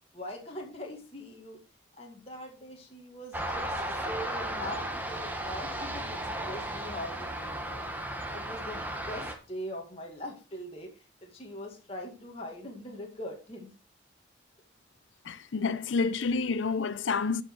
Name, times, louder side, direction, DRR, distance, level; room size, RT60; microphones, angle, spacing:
voice 1, 0.1-1.6 2.0-7.9 8.3-13.7, left 1 dB, 30° left, 2.1 m, -42 dB
sound 1, 3.3-9.4, right 1 dB, 10° right, 1.3 m, -35 dB
voice 2, 15.2-17.4, left 4 dB, 85° left, 0.6 m, -29 dB
12.0 x 5.4 x 4.6 m
head